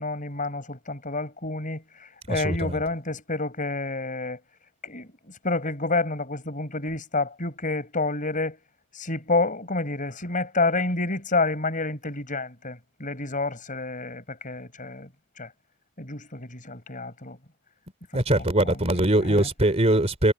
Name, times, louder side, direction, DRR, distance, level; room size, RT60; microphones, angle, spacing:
voice 1, 0.0-4.4 4.8-8.6 8.9-15.1 15.4-15.5 16.0-17.4 18.3-18.8 19.3-19.5, left 3 dB, 35° left, 5.4 m, -29 dB
voice 2, 2.3-2.8 18.1-20.3, right 1 dB, 30° right, 3.3 m, -22 dB
head